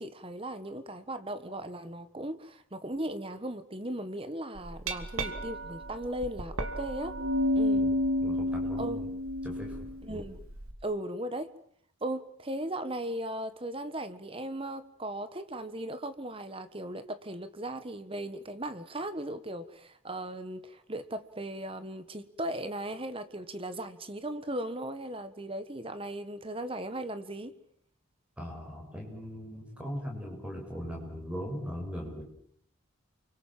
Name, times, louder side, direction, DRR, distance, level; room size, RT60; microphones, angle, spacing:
voice 1, 0.0-7.2 7.5-7.9 8.8-9.0 10.0-10.4 10.8-11.5 12.0-27.5, right 1 dB, 25° right, 1.4 m, -37 dB
Glass, 4.6-10.7, left 1 dB, 85° right, 2.8 m, -31 dB
voice 2, 8.2-9.1 9.4-10.2 28.4-32.2, equal, 5° right, 7.3 m, -39 dB
29.5 x 24.5 x 7.6 m
head